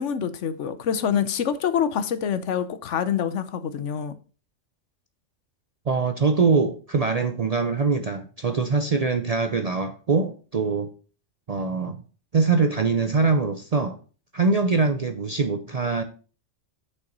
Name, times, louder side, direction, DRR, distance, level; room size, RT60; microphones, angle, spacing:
voice 1, 0.0-4.1, left 8 dB, 70° left, 1.0 m, -26 dB
voice 2, 5.9-10.9 11.5-12.0 12.3-14.0 14.3-16.0, right 4 dB, 45° right, 0.5 m, -23 dB
6.5 x 5.8 x 5.3 m
omnidirectional pair, 1.3 m